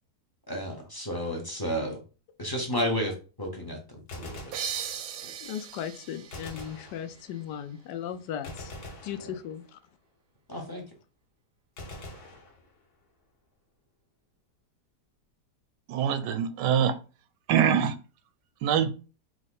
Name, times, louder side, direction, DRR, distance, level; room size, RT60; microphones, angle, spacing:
voice 1, 0.5-2.0 2.4-4.3 9.2-9.4 10.5-10.8, equal, 20° left, 0.7 m, -32 dB
Gunshot gunfire, 4.1-5.3 6.3-7.5 8.4-9.9 11.8-13.1, left 2 dB, 65° left, 1.6 m, -44 dB
sound 1, 4.5-7.9, right 8 dB, 70° right, 0.9 m, -39 dB
voice 2, 5.4-8.7 9.0-9.8, left 9 dB, 80° left, 1.2 m, -37 dB
voice 3, 15.9-16.9 17.5-17.9 18.6-18.9, right 8 dB, 85° right, 1.2 m, -24 dB
4.6 x 2.4 x 4.1 m
omnidirectional pair, 1.8 m